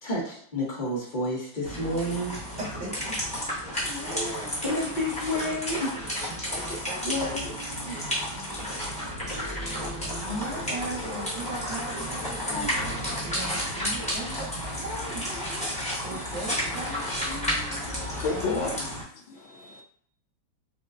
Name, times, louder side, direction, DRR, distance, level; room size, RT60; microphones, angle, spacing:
voice 1, 0.0-2.3 4.6-6.1 6.4-7.4 7.8-8.2, left 1 dB, 40° left, -5 dB, 0.6 m, -31 dB
sound 1, 1.6-19.0, equal, 5° left, 0.8 m, -32 dB
voice 2, 2.6-4.8 6.5-7.5 10.1-12.7 13.2-17.6 18.3-18.9, right 1 dB, 55° right, -4 dB, 0.7 m, -38 dB
voice 3, 15.9-16.6 17.3-18.8 19.3-19.8, left 4 dB, 80° left, 2 dB, 1.3 m, -34 dB
5.0 x 2.1 x 2.5 m, 0.62 s
omnidirectional pair, 2.2 m